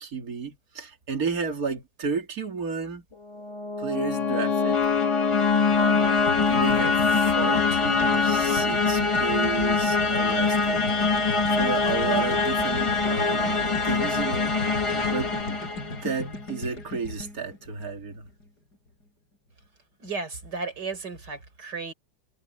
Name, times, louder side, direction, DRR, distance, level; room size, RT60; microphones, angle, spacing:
voice 1, 0.0-3.0 3.8-4.8 5.8-6.2 6.5-10.8 11.5-14.8 15.1-15.3 16.0-18.3, right 5 dB, 55° right, 2.8 m, -32 dB
sound 1, 3.3-16.3, left 3 dB, 25° left, 0.7 m, -24 dB
Bowed string instrument, 3.9-8.8, left 15 dB, 85° left, 2.1 m, -28 dB
sound 2, 6.3-18.5, left 2 dB, 70° left, 7.3 m, -37 dB
voice 2, 20.0-21.9, right 4 dB, 75° right, 5.2 m, -34 dB
omnidirectional pair, 1.8 m